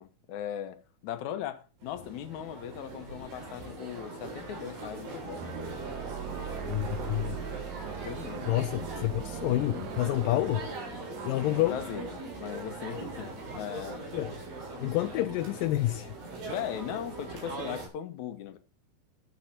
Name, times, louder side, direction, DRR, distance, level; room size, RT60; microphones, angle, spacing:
voice 1, 0.0-5.4 6.3-6.4 8.0-8.5 8.9-9.1 11.4-14.1 14.7-15.0 16.5-18.6, left 10 dB, 60° left, 2.2 m, -39 dB
sound 1, 1.8-17.9, right 2 dB, 65° right, 5.6 m, -41 dB
sound 2, 5.4-10.8, right 8 dB, 90° right, 3.4 m, -40 dB
voice 2, 6.6-7.5 8.4-10.7 11.2-11.8 14.1-14.3 14.8-16.1, left 15 dB, 80° left, 2.0 m, -29 dB
14.5 x 9.5 x 2.8 m
omnidirectional pair, 4.5 m